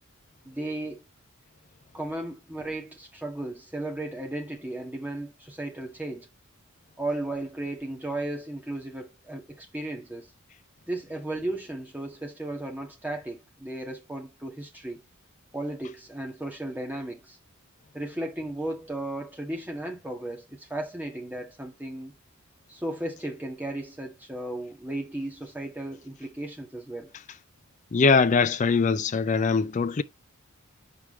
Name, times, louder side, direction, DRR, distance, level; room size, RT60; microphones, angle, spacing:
voice 1, 0.4-1.0 1.9-6.3 7.0-10.3 10.9-15.0 15.5-17.4 17.9-22.1 22.7-27.1, right 1 dB, 10° right, 1.8 m, -35 dB
voice 2, 27.9-30.0, left 4 dB, 35° left, 0.4 m, -22 dB
7.5 x 4.8 x 3.1 m
head